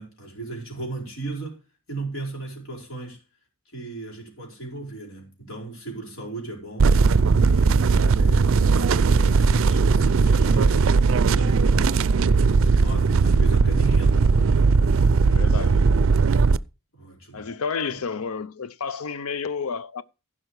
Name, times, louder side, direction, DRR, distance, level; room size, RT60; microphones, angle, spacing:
voice 1, 0.0-1.6 1.9-3.2 3.7-7.0 7.5-10.8 11.2-11.9 12.4-14.6 16.9-17.5 17.9-18.0, right 2 dB, 65° left, 4.9 m, -36 dB
sound 1, 6.8-16.6, right 4 dB, 65° right, 0.4 m, -18 dB
voice 2, 15.2-15.8 17.3-20.0, left 5 dB, 85° left, 0.6 m, -30 dB
15.5 x 5.6 x 4.8 m
head